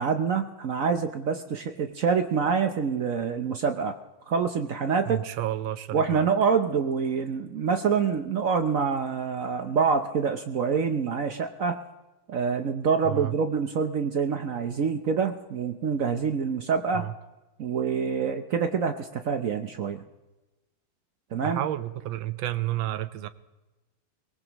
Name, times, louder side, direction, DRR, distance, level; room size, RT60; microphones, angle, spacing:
voice 1, 0.0-4.0 4.3-5.2 5.9-11.8 12.3-17.1 17.6-20.0 21.3-21.6, right 6 dB, 60° right, 8 dB, 0.9 m, -26 dB
voice 2, 5.1-6.3 13.0-13.3 16.9-17.1 21.4-23.3, right 14 dB, 80° right, 13 dB, 1.5 m, -31 dB
22.5 x 19.0 x 3.0 m, 1.1 s
omnidirectional pair, 2.1 m